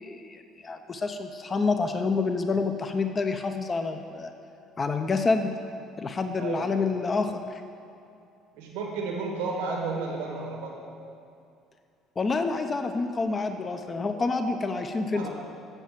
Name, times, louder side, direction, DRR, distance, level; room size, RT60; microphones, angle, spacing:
voice 1, 0.0-4.3 4.8-5.5 6.0-7.6 12.2-15.3, left 4 dB, 35° left, 7 dB, 0.7 m, -28 dB
voice 2, 6.3-6.7 8.6-10.7 15.1-15.3, right 4 dB, 80° right, -1 dB, 1.5 m, -32 dB
9.0 x 7.3 x 7.3 m, 2.5 s
hypercardioid pair, 65°, 0 cm